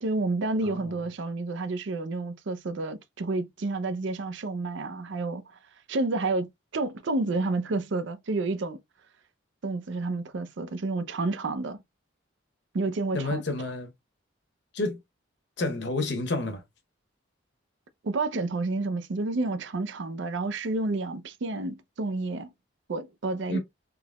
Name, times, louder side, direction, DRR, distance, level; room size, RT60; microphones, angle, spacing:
voice 1, 0.0-5.4 5.9-6.5 6.7-8.8 9.6-11.8 12.7-13.4 18.0-22.5 22.9-23.6, right 2 dB, 65° right, 0.5 m, -30 dB
voice 2, 0.6-1.0 13.1-13.9 14.7-15.0 15.6-16.6 23.5-23.6, left 2 dB, 60° left, 0.9 m, -30 dB
3.7 x 2.9 x 2.2 m
head